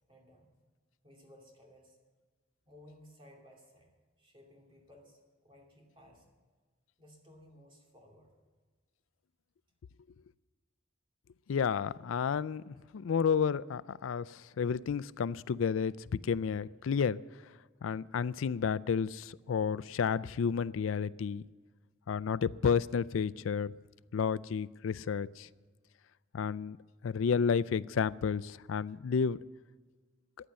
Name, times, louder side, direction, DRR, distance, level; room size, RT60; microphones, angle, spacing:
voice 1, 0.1-0.5 1.0-2.0 2.7-3.9 4.2-6.4 7.0-8.3, left 1 dB, 25° right, 0 dB, 2.7 m, -58 dB
voice 2, 11.5-15.9 16.2-17.2 17.8-21.4 22.1-23.7 24.1-25.5 26.3-26.8 27.0-29.4, left 6 dB, 90° left, 19 dB, 0.4 m, -31 dB
15.0 x 10.0 x 7.5 m, 1.5 s
head